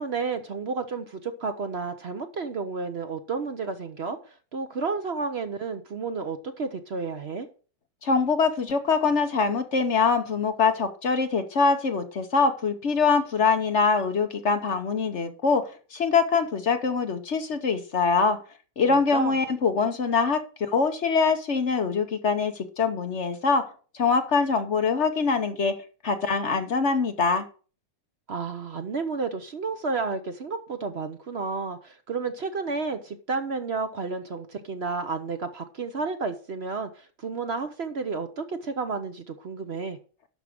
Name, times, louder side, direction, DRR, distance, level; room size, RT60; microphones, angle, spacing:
voice 1, 0.0-7.5 18.9-19.4 28.3-40.0, right 4 dB, 50° right, 8 dB, 1.0 m, -31 dB
voice 2, 8.0-18.4 18.8-20.4 20.7-25.7 26.0-27.4, left 4 dB, 50° left, 7 dB, 1.2 m, -24 dB
12.0 x 4.9 x 6.4 m, 0.38 s
omnidirectional pair, 1.7 m